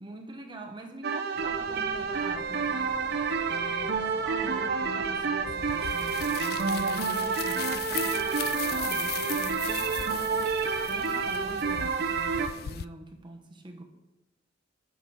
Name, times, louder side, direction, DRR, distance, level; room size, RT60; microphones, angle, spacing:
voice 1, 0.0-13.8, right 1 dB, 25° right, 3 dB, 1.1 m, -44 dB
sound 1, 1.0-12.5, right 5 dB, 55° right, 0.7 m, -29 dB
sound 2, 1.3-11.9, left 1 dB, 5° left, 2.1 m, -49 dB
sound 3, 5.4-12.8, left 12 dB, 55° left, 0.3 m, -38 dB
12.0 x 5.0 x 5.5 m, 0.95 s
head